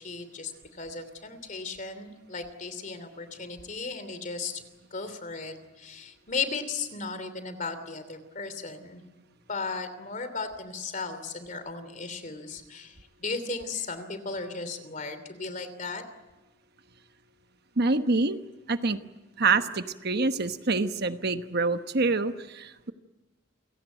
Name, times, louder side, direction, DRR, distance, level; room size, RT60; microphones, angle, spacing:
voice 1, 0.0-4.6 4.9-9.0 9.5-16.0, left 4 dB, 40° left, 11 dB, 2.9 m, -36 dB
voice 2, 17.8-18.4 18.7-19.0 19.4-22.9, right 3 dB, 55° right, 9 dB, 1.1 m, -26 dB
29.5 x 17.0 x 9.1 m, 1.2 s
head